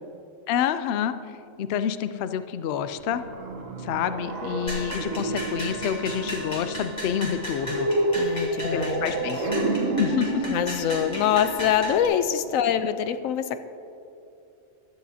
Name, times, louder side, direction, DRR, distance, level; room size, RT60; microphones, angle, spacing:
voice 1, 0.5-1.1 1.6-3.2 3.8-7.9 8.7-9.4 10.0-10.5, left 8 dB, 65° left, 11 dB, 0.7 m, -28 dB
sound 1, 2.9-12.7, right 2 dB, 75° right, 1.4 m, -30 dB
Wind instrument woodwind instrument, 4.0-7.6, right 1 dB, 45° right, 0.6 m, -41 dB
sound 2, 4.7-12.1, equal, 30° left, 2.0 m, -36 dB
voice 2, 8.2-9.5 10.5-13.7, left 9 dB, 85° left, 10 dB, 1.0 m, -25 dB
15.5 x 12.5 x 2.8 m, 2.7 s
omnidirectional pair, 1.4 m